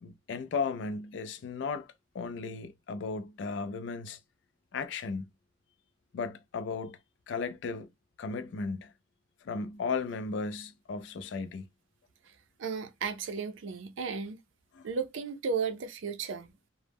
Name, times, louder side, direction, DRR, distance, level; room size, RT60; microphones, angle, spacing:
voice 1, 0.0-4.2 4.7-5.3 6.1-7.0 7.3-7.9 8.2-8.9 9.4-11.6 14.7-14.8, left 4 dB, 65° left, 0.3 m, -35 dB
voice 2, 12.6-14.4 14.8-16.7, right 5 dB, 75° right, 0.4 m, -34 dB
2.0 x 2.0 x 3.3 m
head